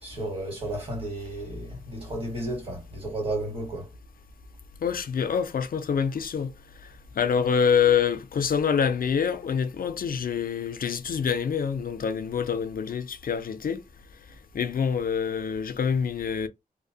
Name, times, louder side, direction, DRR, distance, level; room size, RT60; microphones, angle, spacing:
voice 1, 0.0-3.9, right 1 dB, 40° right, 1.6 m, -33 dB
voice 2, 4.8-6.6 7.1-13.8 14.5-16.5, left 7 dB, 70° left, 0.4 m, -26 dB
2.6 x 2.1 x 2.7 m
wide cardioid pair, 125°, 15 cm